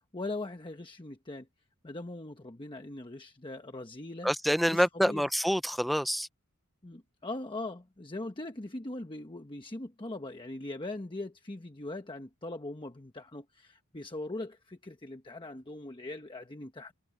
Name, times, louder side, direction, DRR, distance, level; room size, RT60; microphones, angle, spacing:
voice 1, 0.1-1.5 1.8-4.3 4.7-5.3 6.8-16.9, left 2 dB, 25° left, 1.1 m, -40 dB
voice 2, 4.2-6.3, equal, ahead, 0.7 m, -27 dB
head